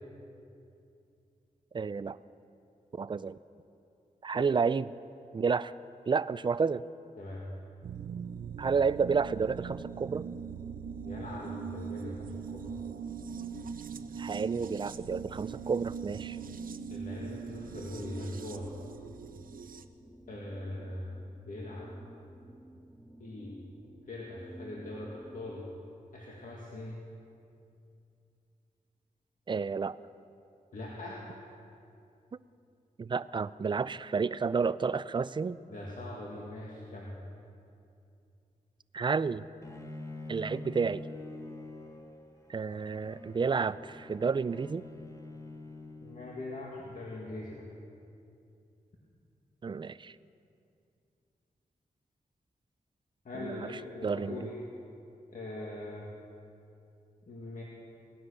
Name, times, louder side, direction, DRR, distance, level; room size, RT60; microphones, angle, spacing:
voice 1, 1.7-2.2 2.9-3.4 4.2-4.9 5.3-5.7 6.1-6.8 8.6-10.2 14.2-16.4 29.5-30.0 33.0-35.6 38.9-39.4 40.3-41.0 42.5-44.8 49.6-50.1 53.3-53.7 54.0-54.5, right 5 dB, 35° right, 16 dB, 0.4 m, -30 dB
sound 1, 7.8-19.8, right 7 dB, 75° right, 0.6 m, -41 dB
voice 2, 11.0-12.8 16.9-18.7 20.3-21.1 21.5-21.9 23.2-23.5 24.1-25.7 26.1-27.0 30.7-31.2 35.7-37.1 46.0-47.7 53.2-54.6 55.3-56.1 57.3-57.6, left 1 dB, 65° left, -4 dB, 2.0 m, -41 dB
sound 2, 12.8-25.6, right 1 dB, ahead, 1.7 m, -54 dB
Bowed string instrument, 39.6-46.7, left 2 dB, 20° left, 1.3 m, -46 dB
17.5 x 10.0 x 6.7 m, 2.6 s
wide cardioid pair, 85°, 14 cm